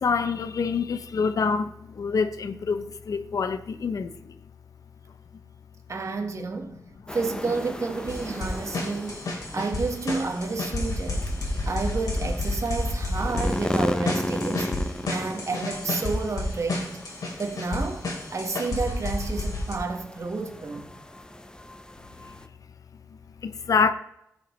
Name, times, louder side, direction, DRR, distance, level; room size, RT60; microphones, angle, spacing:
voice 1, 0.0-4.4 23.4-23.9, left 5 dB, 70° left, 0.6 m, -26 dB
voice 2, 5.9-6.8 7.1-11.3 11.7-17.0 17.4-20.8, right 4 dB, 55° right, 1.4 m, -31 dB
sound 1, 7.1-22.5, left 1 dB, 15° left, 0.7 m, -35 dB
sound 2, 8.1-19.7, left 2 dB, 90° left, 2.9 m, -30 dB
15.5 x 6.4 x 3.1 m
cardioid pair, 65°, 6 cm